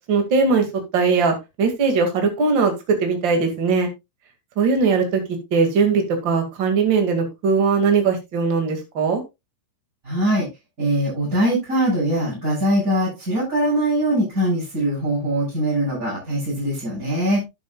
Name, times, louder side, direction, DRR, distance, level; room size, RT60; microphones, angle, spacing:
voice 1, 0.1-0.7 0.9-3.9 4.6-5.2 5.5-9.2, right 4 dB, 35° right, 4 dB, 2.0 m, -20 dB
voice 2, 10.0-10.5 10.8-17.4, right 1 dB, 15° right, -8 dB, 7.3 m, -22 dB
11.5 x 9.4 x 2.4 m, 0.22 s
omnidirectional pair, 5.3 m